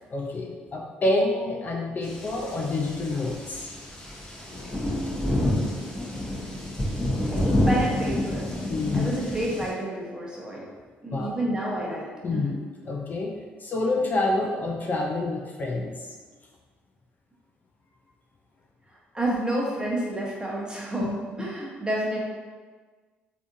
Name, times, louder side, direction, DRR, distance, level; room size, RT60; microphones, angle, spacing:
voice 1, 0.1-3.7 8.7-9.1 11.1-11.3 12.2-12.6 12.9-13.3 13.6-16.0 21.0-21.2, left 2 dB, 40° left, 0 dB, 0.4 m, -27 dB
sound 1, 2.0-9.7, left 1 dB, 15° left, 0.9 m, -28 dB
voice 2, 7.3-8.4 8.9-10.6 11.0-12.5 19.1-21.1 21.4-22.2, right 1 dB, 15° right, -4 dB, 1.1 m, -29 dB
3.4 x 2.7 x 2.5 m, 1.4 s
hypercardioid pair, 55°, 5 cm